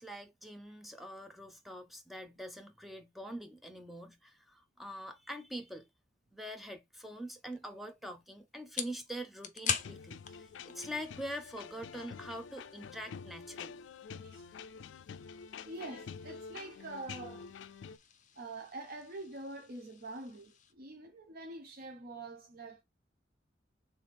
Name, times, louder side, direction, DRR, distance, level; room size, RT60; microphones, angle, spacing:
voice 1, 0.0-5.9 6.3-13.8, equal, ahead, 0.7 m, -44 dB
sound 1, 7.5-20.7, left 8 dB, 45° left, 0.7 m, -45 dB
sound 2, 9.8-18.0, left 6 dB, 80° left, 0.3 m, -48 dB
voice 2, 14.2-14.7 15.6-17.4 18.4-22.8, right 2 dB, 55° right, 0.7 m, -45 dB
3.5 x 3.4 x 4.2 m
head